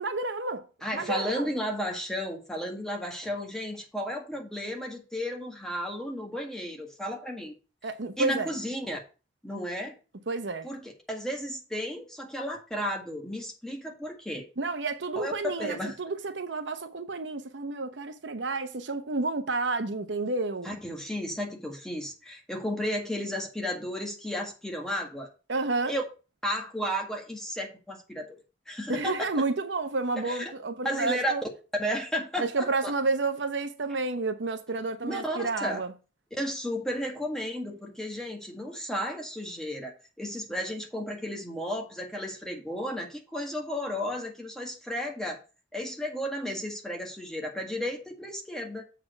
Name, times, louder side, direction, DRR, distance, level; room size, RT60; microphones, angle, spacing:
voice 1, 0.0-0.6 0.9-1.5 7.8-8.5 10.3-10.7 14.6-20.7 25.5-25.9 28.9-31.4 32.4-35.9, right 3 dB, 75° right, 0.9 m, -30 dB
voice 2, 0.8-7.5 8.2-9.0 9.4-9.9 10.6-14.5 15.2-16.0 20.6-25.3 25.9-26.0 26.4-28.4 28.7-29.3 30.2-30.5 30.8-31.3 31.8-32.9 35.0-35.8 36.4-45.4 45.7-48.9, equal, 5° left, 1.7 m, -33 dB
7.5 x 4.3 x 6.3 m
head